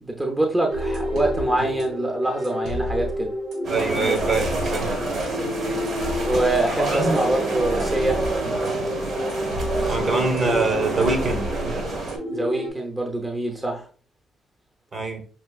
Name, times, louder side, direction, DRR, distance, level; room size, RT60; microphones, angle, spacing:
voice 1, 0.0-3.3 6.2-8.2 12.3-13.8, right 1 dB, 15° right, 2 dB, 0.8 m, -25 dB
sound 1, 0.7-12.7, equal, 90° right, 2.0 m, -29 dB
sound 2, 3.6-12.2, right 2 dB, 60° right, 1.4 m, -28 dB
voice 2, 3.7-4.9 6.9-7.2 9.9-11.5 14.9-15.2, right 3 dB, 40° right, 4 dB, 1.0 m, -24 dB
5.8 x 2.8 x 2.4 m, 0.42 s
cardioid pair, 90°, 0 cm